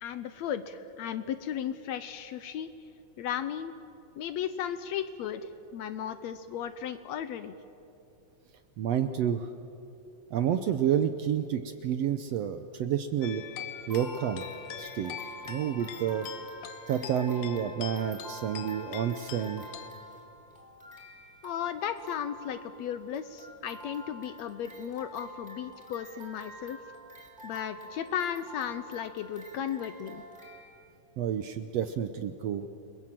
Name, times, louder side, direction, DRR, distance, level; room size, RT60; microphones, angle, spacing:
voice 1, 0.0-2.7 3.2-3.7 4.2-7.6 21.4-26.8 27.4-30.2, left 9 dB, 75° left, 11 dB, 1.8 m, -35 dB
voice 2, 8.8-9.5 10.3-13.4 13.9-14.4 14.8-15.2 15.5-16.3 16.9-19.6 31.2-32.7, right 9 dB, 70° right, 9 dB, 1.6 m, -29 dB
sound 1, 13.2-19.9, left 11 dB, 90° left, 2.6 m, -43 dB
sound 2, 13.7-30.7, right 1 dB, 5° right, 4.3 m, -48 dB
29.5 x 21.5 x 7.5 m, 2.7 s
omnidirectional pair, 3.6 m